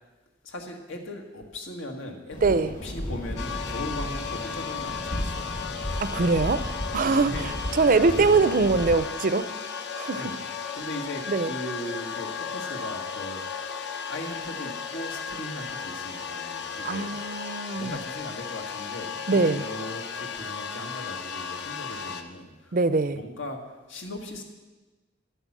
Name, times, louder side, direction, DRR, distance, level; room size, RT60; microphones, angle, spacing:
voice 1, 0.4-5.6 6.5-6.7 7.0-7.5 7.9-8.2 10.1-10.4 10.7-13.4 14.1-17.2 17.7-22.8 23.1-23.6 23.9-24.4, left 1 dB, 80° left, 2 dB, 1.9 m, -38 dB
sound 1, 2.3-8.9, left 1 dB, 45° left, 1.3 m, -34 dB
voice 2, 2.4-2.7 6.0-6.6 6.9-7.3 7.7-9.5 10.0-10.2 11.3-11.5 16.8-17.9 19.3-19.6 22.7-23.2, right 3 dB, 45° right, 13 dB, 0.6 m, -22 dB
sound 2, 3.4-22.2, left 6 dB, 60° left, 0.9 m, -35 dB
10.5 x 9.1 x 7.5 m, 1.2 s
head